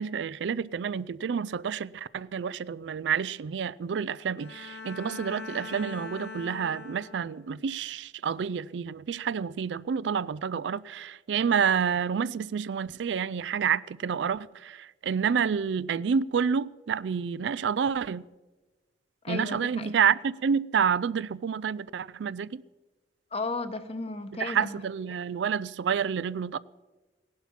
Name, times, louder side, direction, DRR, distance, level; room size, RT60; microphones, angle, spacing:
voice 1, 0.0-18.2 19.3-22.6 24.3-26.6, right 7 dB, 85° right, 0.4 m, -29 dB
Bowed string instrument, 4.4-7.6, left 3 dB, 65° left, 1.5 m, -42 dB
voice 2, 19.2-19.9 23.3-24.8, left 3 dB, 35° left, 1.0 m, -34 dB
16.5 x 11.5 x 5.8 m
head